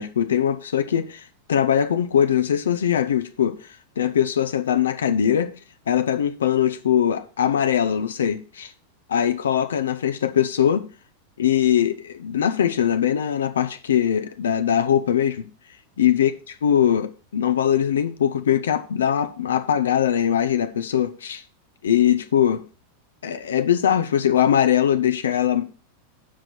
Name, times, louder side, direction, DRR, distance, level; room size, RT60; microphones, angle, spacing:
voice 1, 0.0-3.7 4.0-5.5 5.9-8.7 9.1-10.9 11.4-15.5 16.0-21.4 21.8-22.6 23.2-25.7, left 9 dB, 65° left, 0.6 m, -21 dB
7.5 x 5.3 x 6.1 m
figure-of-eight pair, 90°, 0 cm